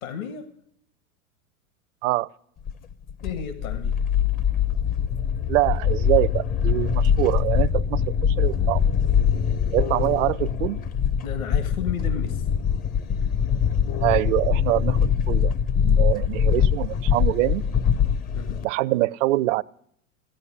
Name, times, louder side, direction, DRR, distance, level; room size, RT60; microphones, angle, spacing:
voice 1, 0.0-0.5 3.2-4.0 10.0-10.1 11.2-12.5 18.3-18.6, left 7 dB, 70° left, 9 dB, 1.7 m, -33 dB
sound 1, 2.7-18.6, left 8 dB, 20° left, 0.5 m, -23 dB
voice 2, 5.5-8.8 9.7-10.8 14.0-15.5 15.8-17.6 18.6-19.6, right 18 dB, 60° right, 18 dB, 0.5 m, -24 dB
14.5 x 9.4 x 9.9 m, 0.68 s
hypercardioid pair, 100°, 43 cm